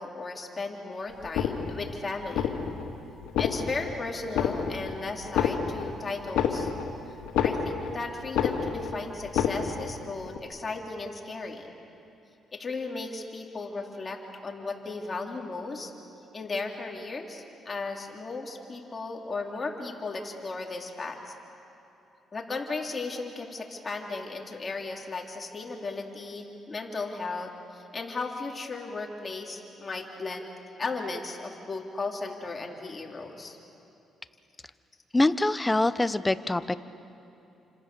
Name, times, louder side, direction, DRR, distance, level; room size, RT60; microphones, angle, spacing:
voice 1, 0.0-2.5 3.4-6.7 7.4-11.7 12.5-15.9 16.3-21.3 22.3-30.5 30.8-33.6, left 3 dB, 30° left, 1 dB, 3.3 m, -35 dB
sound 1, 1.2-1.9 2.3-2.9 3.2-3.9 4.3-4.9 5.2-8.0 8.3-8.9 9.2-9.9 10.3-10.4, left 7 dB, 90° left, 2.2 m, -28 dB
voice 2, 35.1-36.8, left 2 dB, 15° left, 13 dB, 0.9 m, -24 dB
29.5 x 26.0 x 6.9 m, 2.9 s
cardioid pair, 90°, 0 cm